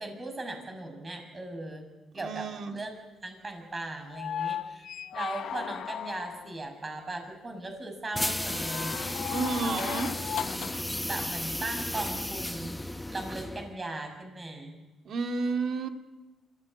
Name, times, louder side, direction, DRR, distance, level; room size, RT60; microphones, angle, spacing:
voice 1, 0.0-1.9 2.1-2.5 2.7-4.9 5.1-9.2 9.5-9.9 10.3-10.8 11.1-12.8 13.1-14.8, right 2 dB, 30° right, 5 dB, 6.7 m, -38 dB
voice 2, 2.2-2.7 9.3-10.1 15.1-15.9, right 4 dB, 60° right, 5 dB, 2.0 m, -31 dB
sound 1, 4.1-6.6 8.4-10.9 12.5-12.6, left 9 dB, 70° left, 0.7 m, -36 dB
sound 2, 8.1-13.8, left 1 dB, 10° left, 0.9 m, -34 dB
25.5 x 15.5 x 9.6 m, 1.1 s
cardioid pair, 90°, 0 cm